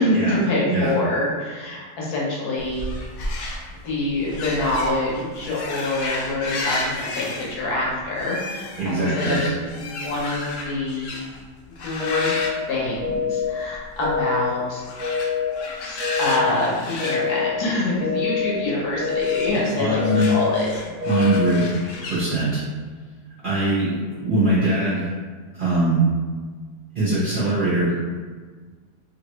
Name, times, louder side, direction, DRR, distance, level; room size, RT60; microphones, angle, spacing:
voice 1, 0.0-2.9 3.8-11.2 11.8-12.4 12.7-14.9 15.8-20.0 20.3-20.7, left 1 dB, 70° left, -5 dB, 1.2 m, -25 dB
sound 1, 2.6-11.4 11.8-13.5 13.7-14.1 14.8-18.2 19.1-22.2, left 2 dB, 85° left, 0.6 m, -33 dB
voice 2, 8.8-9.4 19.8-20.3 21.1-21.7 22.0-22.6 23.4-25.1 25.5-26.1 26.9-27.9, right 2 dB, 40° right, -10 dB, 0.7 m, -21 dB
sound 2, 12.0-12.5 13.0-13.5 14.0-14.5 15.0-15.5 16.0-16.5 17.0-17.5 18.0-18.5 19.0-19.5 20.0-20.5 21.0-21.5, left 6 dB, 10° right, 0.7 m, -25 dB
3.0 x 2.5 x 2.9 m, 1.5 s
omnidirectional pair, 1.9 m